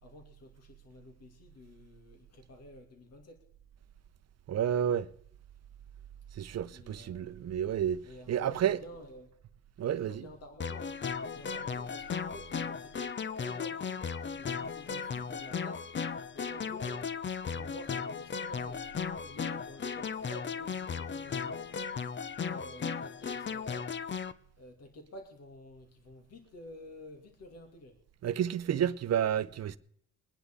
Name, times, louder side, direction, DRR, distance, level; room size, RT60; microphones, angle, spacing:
voice 1, 0.0-3.4 6.7-7.3 8.0-9.3 9.9-13.1 13.4-14.1 14.3-15.9 16.3-18.9 19.2-21.8 22.4-24.0 24.6-28.0, left 1 dB, 55° left, 2.5 m, -50 dB
voice 2, 4.5-5.1 6.4-8.0 8.3-8.8 9.8-10.2 28.2-29.8, right 9 dB, 55° right, 0.8 m, -30 dB
sound 1, 10.6-24.3, left 6 dB, 40° left, 0.8 m, -36 dB
22.5 x 10.0 x 3.7 m
cardioid pair, 90°, 30 cm